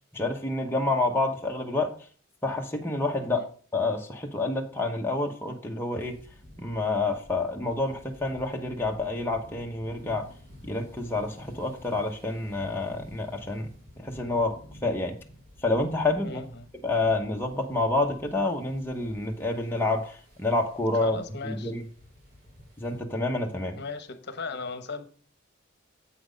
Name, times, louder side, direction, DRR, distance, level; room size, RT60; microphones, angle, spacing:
voice 1, 0.1-1.9 2.4-3.5 3.7-6.1 6.6-10.3 10.6-13.7 14.0-14.6 14.8-15.1 15.6-16.4 16.8-21.2 21.4-21.8 22.8-23.8, left 2 dB, 10° left, 0 dB, 0.9 m, -28 dB
sound 1, 6.0-23.0, equal, 45° right, 2.6 m, -51 dB
voice 2, 16.2-16.7 21.0-21.7 23.8-25.1, left 4 dB, 55° left, 9 dB, 1.0 m, -37 dB
8.1 x 6.1 x 5.1 m, 0.42 s
head